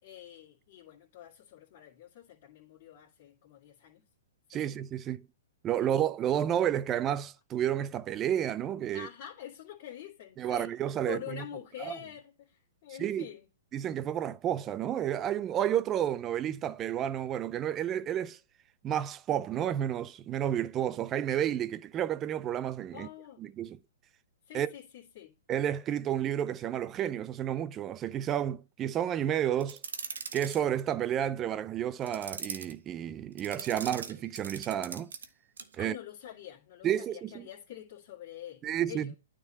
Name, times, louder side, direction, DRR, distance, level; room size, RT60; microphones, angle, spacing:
voice 1, 0.0-4.0 4.5-4.7 5.8-5.9 8.9-10.7 11.1-13.4 22.9-23.5 24.5-25.3 35.8-39.1, left 11 dB, 45° left, 2.2 m, -46 dB
voice 2, 4.5-5.3 5.6-9.1 10.4-11.4 11.8-12.0 13.0-13.3 13.7-18.4 18.8-23.1 23.4-23.8 24.5-24.7 25.5-29.8 30.3-35.1 35.8-36.0 36.8-37.5 38.6-39.2, right 10 dB, 20° right, 0.4 m, -31 dB
sound 1, 29.6-30.6 32.0-32.7 33.4-35.3 35.6-35.8, right 5 dB, 85° right, 1.0 m, -40 dB
9.4 x 3.8 x 4.5 m
hypercardioid pair, 140°, 0 cm